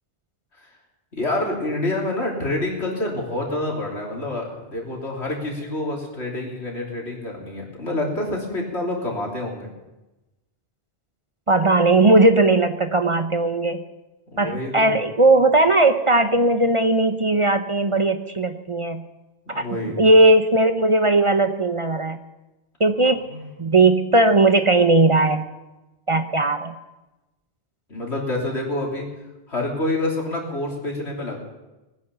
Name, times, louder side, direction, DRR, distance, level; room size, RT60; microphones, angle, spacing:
voice 1, 1.1-9.7 14.3-15.0 19.5-20.0 23.2-23.4 27.9-29.1 29.5-31.4, left 2 dB, 90° left, -1 dB, 3.6 m, -27 dB
voice 2, 11.5-13.8 14.4-19.0 19.5-22.2 22.8-23.2 23.6-25.4 26.1-26.7, right 2 dB, 35° right, 9 dB, 0.7 m, -18 dB
19.0 x 10.0 x 6.9 m, 1.0 s
omnidirectional pair, 1.1 m